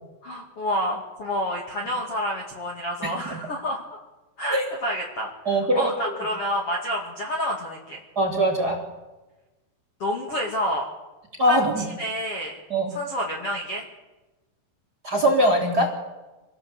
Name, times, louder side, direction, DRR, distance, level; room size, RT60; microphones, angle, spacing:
voice 1, 0.2-3.8 4.4-8.0 10.0-10.9 11.4-12.5 12.9-13.8, equal, 40° left, 0 dB, 2.3 m, -29 dB
voice 2, 5.4-5.9 8.1-8.8 11.4-11.8 12.7-12.9 15.0-15.9, right 1 dB, 25° right, 1 dB, 3.1 m, -21 dB
26.5 x 19.0 x 8.0 m, 1.1 s
omnidirectional pair, 5.7 m